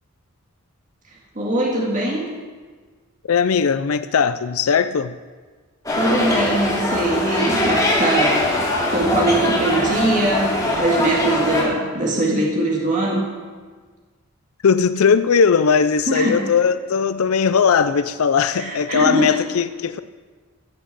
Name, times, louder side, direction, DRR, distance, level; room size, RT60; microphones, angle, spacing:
voice 1, 1.4-2.3 5.9-8.4 8.9-13.3 16.1-16.4 18.5-19.3, right 2 dB, 35° right, -3 dB, 2.0 m, -21 dB
voice 2, 3.3-5.2 14.6-20.0, left 6 dB, 75° left, 12 dB, 0.5 m, -18 dB
sound 1, 5.9-11.6, left 1 dB, 15° left, 3.0 m, -21 dB
15.0 x 7.5 x 7.1 m, 1.4 s
head